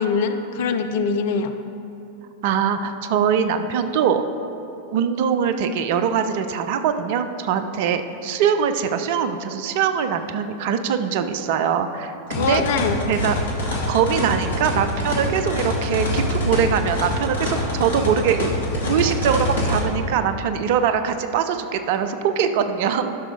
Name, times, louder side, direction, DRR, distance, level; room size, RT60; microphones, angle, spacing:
voice 1, 0.0-1.5 12.3-13.0, left 5 dB, 55° left, 8 dB, 0.5 m, -23 dB
voice 2, 2.4-4.2 4.9-12.6 13.1-13.3 13.9-18.5 18.8-23.2, right 7 dB, 50° right, 9 dB, 0.5 m, -22 dB
sound 1, 12.3-19.8, left 1 dB, 70° left, 1.4 m, -25 dB
12.5 x 6.0 x 3.4 m, 2.9 s
figure-of-eight pair, 90°, 0 cm